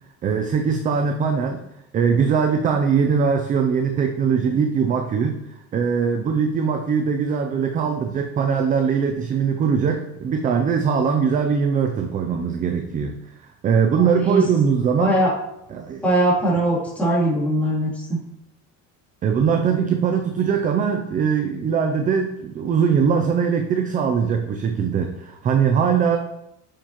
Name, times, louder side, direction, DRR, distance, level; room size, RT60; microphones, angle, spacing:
voice 1, 0.2-1.6 1.9-13.2 13.6-15.3 15.7-16.0 19.2-26.2, right 6 dB, 20° right, 4 dB, 0.4 m, -21 dB
voice 2, 14.0-14.4 15.0-15.3 16.0-18.2, right 1 dB, 5° left, -7 dB, 2.9 m, -21 dB
7.3 x 6.7 x 3.0 m, 0.84 s
cardioid pair, 150°, 37 cm